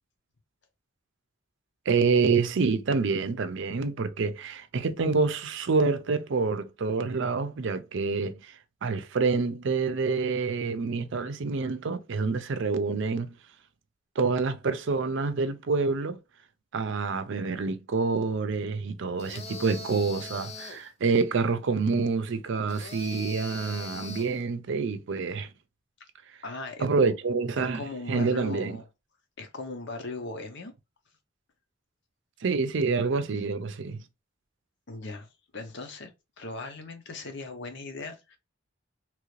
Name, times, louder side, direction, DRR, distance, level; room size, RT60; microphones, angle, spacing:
voice 1, 1.9-13.3 14.2-16.2 16.7-25.5 26.8-28.8 32.4-34.0, right 4 dB, 65° right, 0.5 m, -27 dB
sound 1, 19.2-20.9 22.7-24.4, left 4 dB, 35° left, 0.6 m, -41 dB
voice 2, 26.4-27.1 27.6-28.8 29.4-30.7 34.9-36.1 36.4-38.4, left 3 dB, 65° left, 0.8 m, -39 dB
3.1 x 2.5 x 3.1 m
head